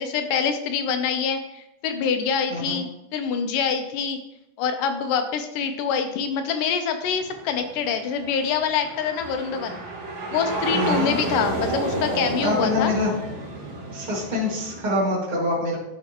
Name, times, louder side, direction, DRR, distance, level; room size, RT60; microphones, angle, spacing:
voice 1, 0.0-4.2 4.6-9.8 10.3-12.9, left 6 dB, 85° left, 7 dB, 2.4 m, -25 dB
voice 2, 2.5-2.8 10.7-11.1 12.4-13.1 13.9-15.8, left 1 dB, 25° right, -6 dB, 1.1 m, -25 dB
sound 1, 7.0-14.8, right 2 dB, 65° right, 1.2 m, -31 dB
12.0 x 4.3 x 2.9 m, 0.86 s
omnidirectional pair, 3.8 m